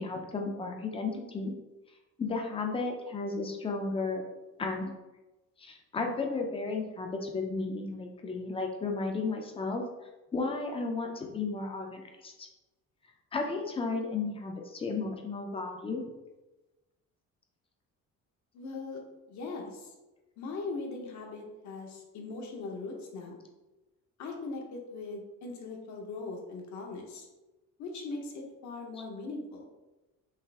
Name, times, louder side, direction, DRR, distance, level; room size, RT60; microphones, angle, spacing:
voice 1, 0.0-1.6 2.2-4.2 4.6-4.9 5.6-9.8 10.3-12.5 13.3-16.0, left 3 dB, 20° left, 2 dB, 0.4 m, -33 dB
voice 2, 18.5-19.0 19.3-19.9 20.4-23.4 24.2-27.3 27.8-29.7, left 3 dB, 70° left, 1 dB, 1.0 m, -40 dB
5.5 x 2.5 x 3.4 m, 1.1 s
cardioid pair, 175°, 30 cm